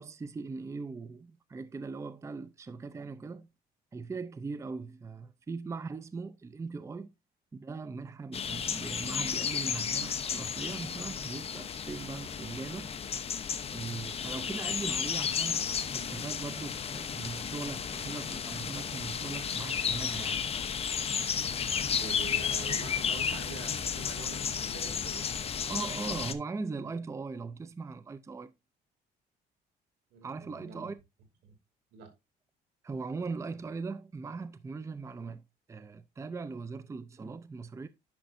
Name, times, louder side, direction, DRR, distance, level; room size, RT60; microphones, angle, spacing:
voice 1, 0.0-3.5 3.9-7.1 7.5-12.9 13.7-20.5 25.7-28.5 30.2-30.9 32.8-35.4 35.7-37.9, right 4 dB, 15° right, 0.5 m, -40 dB
sound 1, 8.3-26.3, left 7 dB, 35° left, 0.8 m, -33 dB
voice 2, 22.0-25.3 30.1-30.9 31.4-31.6 31.9-32.1, right 6 dB, 80° right, 2.7 m, -46 dB
10.5 x 5.8 x 2.6 m
cardioid pair, 110°, 17 cm